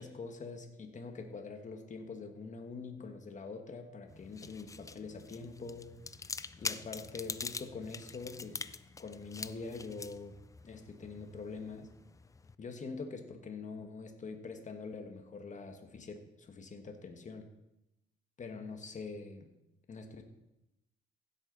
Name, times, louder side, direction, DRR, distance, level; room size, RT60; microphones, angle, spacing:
voice 1, 0.0-5.9 6.6-8.6 9.0-11.9 12.6-17.5 18.4-19.5 19.9-20.2, left 4 dB, 35° left, 5 dB, 1.5 m, -44 dB
sound 1, 4.1-12.6, left 4 dB, 15° left, 0.3 m, -45 dB
15.5 x 8.4 x 4.0 m, 0.92 s
cardioid pair, 110°, 20 cm